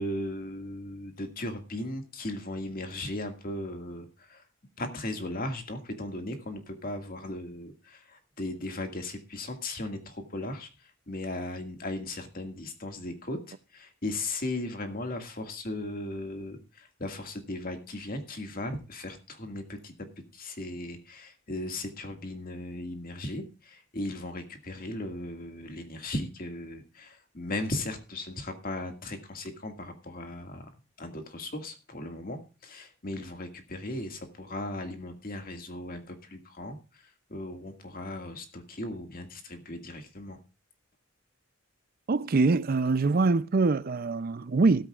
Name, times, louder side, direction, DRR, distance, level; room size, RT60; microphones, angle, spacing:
voice 1, 0.0-4.4 4.8-20.1 20.3-30.7 31.0-40.4, left 1 dB, 45° left, 2.0 m, -37 dB
voice 2, 42.1-44.9, right 3 dB, 45° right, 0.5 m, -24 dB
15.5 x 13.5 x 2.4 m
head